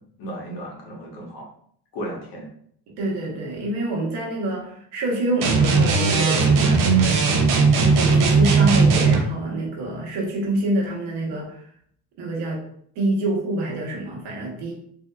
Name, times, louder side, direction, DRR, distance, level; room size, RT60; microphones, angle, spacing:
voice 1, 0.0-1.4 1.9-2.5, equal, 65° left, -1 dB, 1.2 m, -35 dB
voice 2, 3.0-7.4 7.7-11.6 12.2-12.6 12.9-14.7, right 1 dB, 85° right, -2 dB, 1.1 m, -26 dB
sound 1, 5.4-9.2, right 4 dB, 55° right, 0.6 m, -17 dB
3.5 x 2.7 x 2.3 m, 0.65 s
cardioid pair, 125°, 39 cm